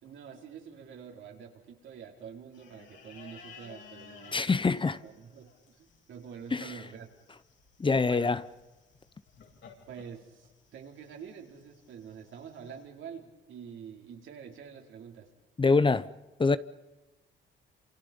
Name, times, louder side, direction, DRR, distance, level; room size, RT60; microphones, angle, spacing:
voice 1, 0.0-7.1 8.1-8.3 9.9-15.3, right 7 dB, 75° right, 4.8 m, -47 dB
sound 1, 2.5-12.8, left 6 dB, 70° left, 8.0 m, -56 dB
voice 2, 4.3-5.0 6.5-6.6 7.8-8.4 15.6-16.1 16.4-16.6, left 4 dB, 25° left, 0.9 m, -24 dB
29.0 x 28.0 x 5.5 m
cardioid pair, 90°, 20 cm